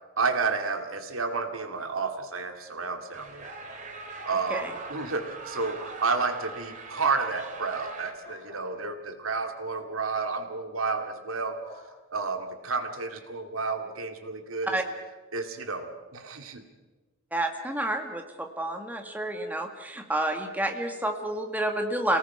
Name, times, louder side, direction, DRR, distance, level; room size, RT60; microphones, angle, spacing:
voice 1, 0.2-3.5 4.2-11.8 12.1-14.8 15.3-16.6, right 4 dB, 80° right, 6 dB, 2.3 m, -31 dB
sound 1, 3.1-8.1, right 3 dB, 40° right, 2.6 m, -41 dB
sound 2, 8.2-8.7 9.6-9.9 11.6-11.9, left 2 dB, 25° left, 5.7 m, -49 dB
voice 2, 17.3-22.2, right 1 dB, 10° right, 4 dB, 1.7 m, -29 dB
28.0 x 18.5 x 6.0 m, 1.2 s
head